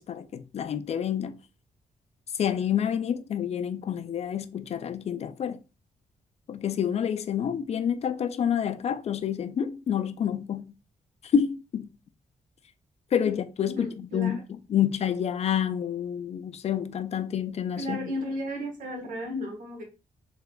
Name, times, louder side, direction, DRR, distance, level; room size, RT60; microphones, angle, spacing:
voice 1, 0.0-1.4 2.3-5.6 6.5-10.7 11.2-11.9 13.1-18.1, left 8 dB, 50° left, 0.4 m, -28 dB
voice 2, 13.7-14.4 17.8-19.8, left 1 dB, 80° right, 1.3 m, -34 dB
3.6 x 3.4 x 2.2 m
cardioid pair, 120°, 14 cm